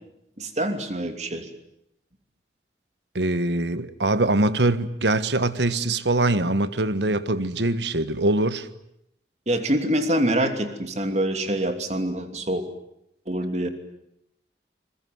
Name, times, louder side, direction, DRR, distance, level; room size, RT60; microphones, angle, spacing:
voice 1, 0.4-1.5 9.5-12.6 13.3-13.7, right 1 dB, 40° right, 2.9 m, -25 dB
voice 2, 3.1-8.7, right 2 dB, 80° right, 1.4 m, -23 dB
26.0 x 21.0 x 9.5 m
head